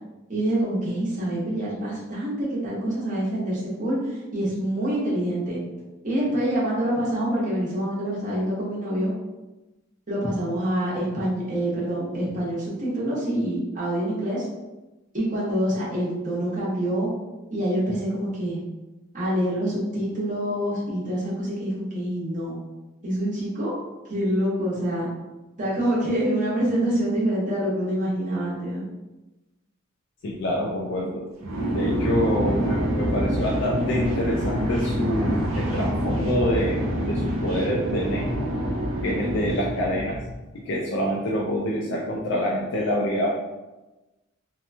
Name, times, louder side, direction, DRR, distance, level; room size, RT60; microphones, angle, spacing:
voice 1, 0.3-5.6 6.0-9.1 10.1-14.5 15.1-17.1 17.5-18.6 19.1-22.5 23.0-23.7 24.1-25.1 25.6-28.8, right 1 dB, 40° right, -7 dB, 0.9 m, -26 dB
voice 2, 30.2-31.2 31.7-38.3 39.0-40.2 40.5-43.3, equal, 65° left, -3 dB, 0.4 m, -26 dB
sound 1, 31.4-40.3, equal, 90° right, 0.7 m, -26 dB
2.8 x 2.2 x 2.5 m, 1.1 s
head